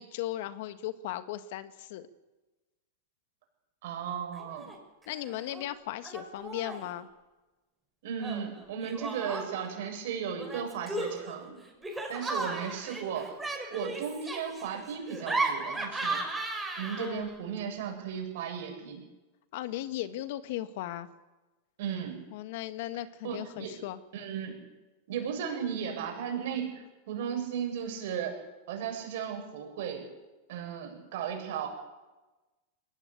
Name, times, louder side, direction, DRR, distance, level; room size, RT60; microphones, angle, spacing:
voice 1, 0.0-2.1 5.1-7.1 17.0-17.3 19.5-21.1 22.3-24.0, left 14 dB, 65° left, 11 dB, 1.6 m, -37 dB
voice 2, 3.8-4.7 8.0-11.6 12.1-13.4 13.7-16.2 16.8-19.0 21.8-22.2 23.2-23.7 24.1-24.6 25.1-28.3 28.7-30.1 30.5-31.7, right 7 dB, 65° right, 3 dB, 7.4 m, -35 dB
Laughter, 4.3-4.8 5.0-5.6 6.0-6.9 8.2-9.7 10.4-17.3, right 2 dB, 10° right, 5.9 m, -36 dB
21.5 x 18.0 x 8.6 m, 1.1 s
hypercardioid pair, 115°, 0 cm